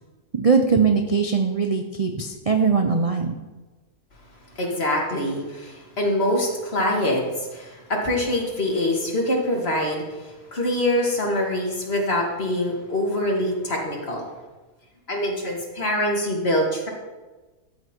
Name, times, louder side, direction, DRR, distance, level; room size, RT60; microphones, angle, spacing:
voice 1, 0.3-3.4, right 5 dB, 40° right, 4 dB, 0.5 m, -21 dB
voice 2, 4.6-14.3 15.1-16.9, left 1 dB, 40° left, -1 dB, 2.4 m, -24 dB
13.0 x 8.4 x 4.5 m, 1.2 s
omnidirectional pair, 1.7 m